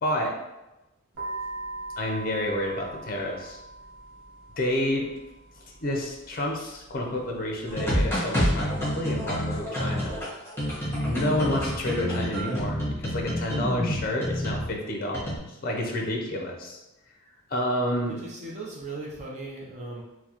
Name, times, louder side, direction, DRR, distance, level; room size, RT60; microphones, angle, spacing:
voice 1, 0.0-0.3 2.0-3.6 4.5-5.1 5.8-10.2 11.0-16.8 17.5-18.2, left 1 dB, 45° left, 1 dB, 0.5 m, -29 dB
sound 1, 1.1-8.1, right 2 dB, 65° right, 0.9 m, -42 dB
sound 2, 7.7-14.7 15.1-15.4, equal, 10° left, 1.1 m, -28 dB
voice 2, 18.1-20.0, right 2 dB, 35° right, -3 dB, 0.5 m, -38 dB
4.5 x 2.1 x 2.8 m, 0.98 s
head